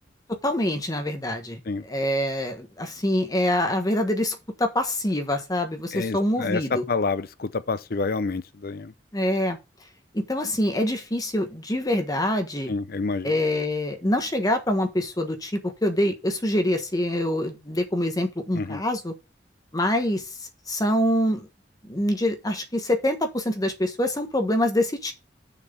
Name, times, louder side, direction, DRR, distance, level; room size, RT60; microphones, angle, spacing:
voice 1, 0.3-6.8 9.1-9.6 10.1-12.7 13.2-19.1 19.7-20.2 20.7-21.5 21.8-25.1, left 1 dB, 20° left, 1.4 m, -25 dB
voice 2, 5.9-8.9 12.7-13.3 18.5-18.8, left 4 dB, 55° left, 0.6 m, -28 dB
6.8 x 4.7 x 6.9 m
head